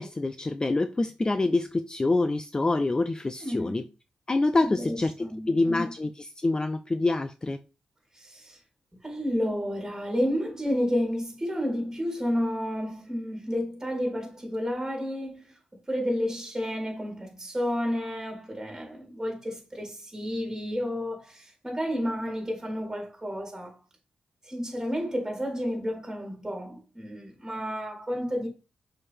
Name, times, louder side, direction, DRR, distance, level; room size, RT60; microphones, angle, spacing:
voice 1, 0.0-3.8 4.3-7.6, left 2 dB, 25° left, 0.4 m, -26 dB
voice 2, 3.4-3.9 4.8-5.9 8.1-8.6 9.0-15.5 15.9-23.8 24.4-28.5, equal, 15° right, 3.9 m, -31 dB
6.5 x 5.6 x 3.4 m
cardioid pair, 85°, 3 cm